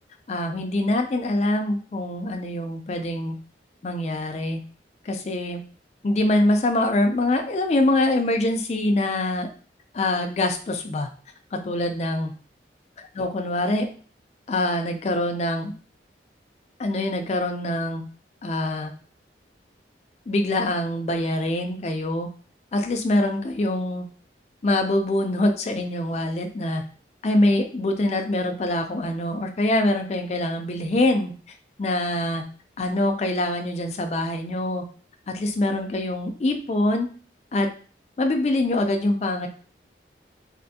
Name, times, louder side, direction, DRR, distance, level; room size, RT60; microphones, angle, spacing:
voice 1, 0.3-3.3 3.8-4.6 5.1-5.6 6.0-9.5 9.9-11.1 11.5-12.3 13.1-13.9 14.5-15.7 16.8-18.0 18.4-18.9 20.3-22.3 22.7-24.1 24.6-26.8 27.2-31.3 31.8-32.4 32.8-34.8 35.3-37.1 37.5-37.7 38.2-39.5, left 1 dB, 35° left, 4 dB, 0.4 m, -24 dB
3.3 x 2.5 x 2.7 m, 0.40 s
head